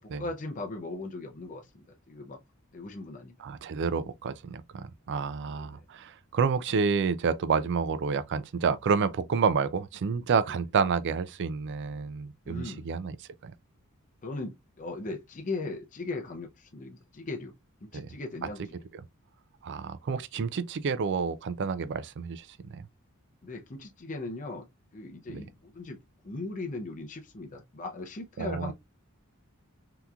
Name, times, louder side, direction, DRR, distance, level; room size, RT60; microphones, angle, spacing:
voice 1, 0.2-2.4 2.7-3.3 5.5-5.8 12.5-12.9 14.2-17.5 17.8-18.6 23.4-24.7 24.9-26.0 26.2-28.7, left 2 dB, 35° left, 0.6 m, -38 dB
voice 2, 3.4-13.2 13.4-13.5 17.9-18.1 19.6-22.5 22.7-22.8 25.3-25.4 28.4-28.7, right 5 dB, 50° right, 0.4 m, -29 dB
3.6 x 2.8 x 2.3 m
head